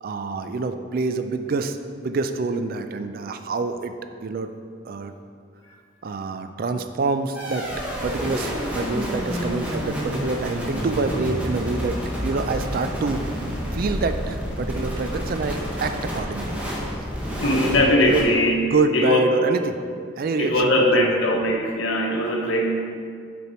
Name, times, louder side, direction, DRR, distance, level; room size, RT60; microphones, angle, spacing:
voice 1, 0.0-3.9 4.2-4.5 4.8-5.1 6.0-7.7 8.0-16.5 16.9-18.3 18.6-19.8 20.2-21.2, right 3 dB, 50° right, 8 dB, 0.4 m, -27 dB
sound 1, 7.3-18.2, equal, 5° right, 1.1 m, -29 dB
voice 2, 17.4-18.6 18.9-19.2 20.4-22.7, left 1 dB, 90° left, 1 dB, 0.9 m, -20 dB
6.8 x 4.4 x 4.3 m, 2.3 s
head